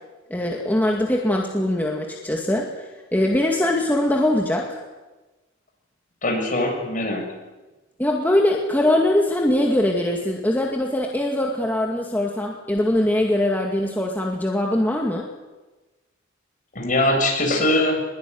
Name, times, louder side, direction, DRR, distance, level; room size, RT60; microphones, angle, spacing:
voice 1, 0.3-4.8 8.0-15.3, left 1 dB, 10° left, -1 dB, 2.3 m, -22 dB
voice 2, 6.2-7.3 16.7-18.0, left 1 dB, 40° left, 1 dB, 7.2 m, -21 dB
22.0 x 21.5 x 9.6 m, 1.2 s
head